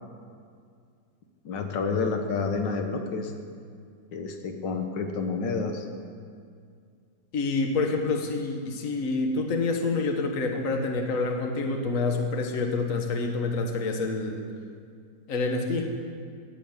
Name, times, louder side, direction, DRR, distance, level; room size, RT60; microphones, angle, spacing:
voice 1, 1.4-3.3 4.1-5.9, left 4 dB, 90° left, 5 dB, 1.7 m, -29 dB
voice 2, 7.3-14.4 15.3-15.9, left 3 dB, 50° left, 3 dB, 1.5 m, -27 dB
16.5 x 5.7 x 8.7 m, 2.2 s
omnidirectional pair, 1.9 m